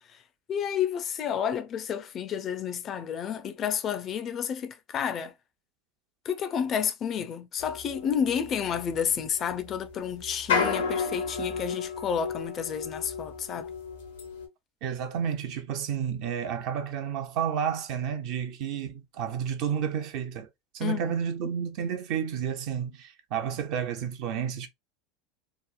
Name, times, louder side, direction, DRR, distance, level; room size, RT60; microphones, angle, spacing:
voice 1, 0.5-5.3 6.2-13.7 20.8-21.2, left 8 dB, 40° left, 0.4 m, -30 dB
sound 1, 7.6-14.5, left 5 dB, 90° left, 0.9 m, -33 dB
voice 2, 14.8-20.5 20.7-24.7, right 8 dB, 60° right, 0.6 m, -31 dB
2.9 x 2.0 x 2.3 m
hypercardioid pair, 90°, 0 cm